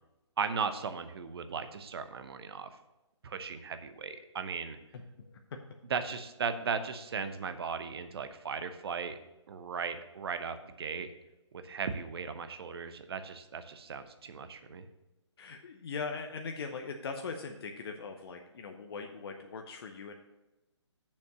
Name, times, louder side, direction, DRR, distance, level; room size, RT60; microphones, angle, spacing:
voice 1, 0.4-2.7 3.2-4.8 5.9-9.2 9.5-11.1 11.5-14.9, right 5 dB, 55° right, 10 dB, 0.9 m, -37 dB
voice 2, 4.9-5.6 15.4-20.1, left 4 dB, 55° left, 4 dB, 0.8 m, -40 dB
7.1 x 5.3 x 6.6 m, 1.0 s
figure-of-eight pair, 140°, 15 cm